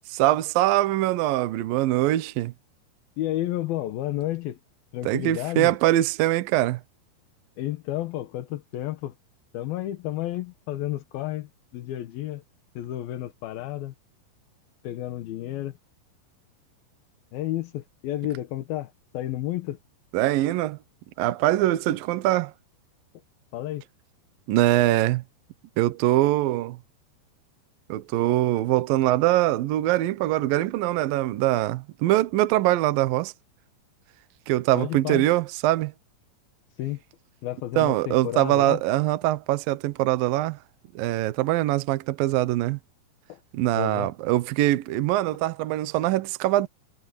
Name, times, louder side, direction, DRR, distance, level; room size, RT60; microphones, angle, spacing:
voice 1, 0.1-2.5 5.0-6.8 20.1-20.8 21.2-22.5 24.5-25.2 25.8-26.8 27.9-33.3 34.5-35.9 37.8-40.6 41.0-42.8 43.5-46.7, right 15 dB, 70° right, 2.3 m, -23 dB
voice 2, 3.2-4.6 4.9-5.8 7.6-9.1 9.5-12.4 12.8-13.9 14.8-15.8 17.3-19.8 23.5-23.8 34.7-35.3 36.8-37.0 37.4-38.8 43.3-43.4 43.7-44.1, left 14 dB, 70° left, 2.7 m, -31 dB
omnidirectional pair, 5.1 m